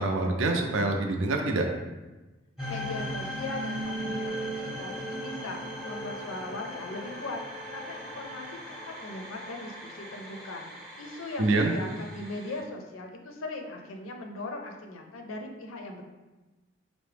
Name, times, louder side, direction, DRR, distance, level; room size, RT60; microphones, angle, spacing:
voice 1, 0.0-1.7 11.4-11.7, right 2 dB, 75° right, 3 dB, 0.5 m, -25 dB
sound 1, 2.6-12.6, equal, 5° right, 0.8 m, -38 dB
voice 2, 2.7-5.6 5.9-16.0, left 2 dB, 90° left, 3 dB, 0.5 m, -39 dB
4.6 x 2.1 x 3.3 m, 1.1 s
head